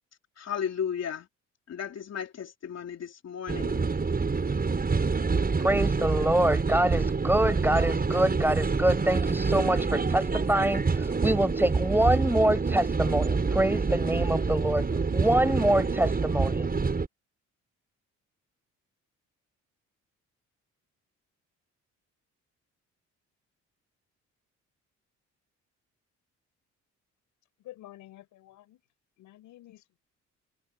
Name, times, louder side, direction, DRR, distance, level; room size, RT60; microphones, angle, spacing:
voice 1, 0.4-1.3 1.7-3.8, left 8 dB, 60° left, 3.4 m, -34 dB
sound 1, 3.5-17.1, right 4 dB, 30° right, 6.7 m, -27 dB
voice 2, 5.6-14.9 15.1-16.7, right 1 dB, 5° right, 7.3 m, -25 dB
voice 3, 27.7-28.8 29.2-30.0, left 15 dB, 90° left, 5.6 m, -49 dB
cardioid pair, 90°, 30 cm